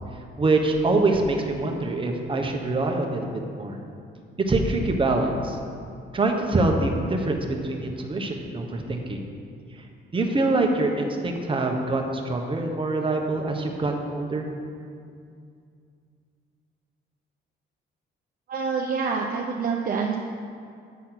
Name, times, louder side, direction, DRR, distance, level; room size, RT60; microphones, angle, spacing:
voice 1, 0.4-3.3 3.5-3.8 4.5-5.6 6.1-9.2 10.1-14.5, right 2 dB, 25° right, 2 dB, 1.0 m, -24 dB
voice 2, 18.5-20.1, right 5 dB, 45° right, 1 dB, 0.6 m, -26 dB
9.2 x 4.2 x 5.9 m, 2.4 s
cardioid pair, 90°, 20 cm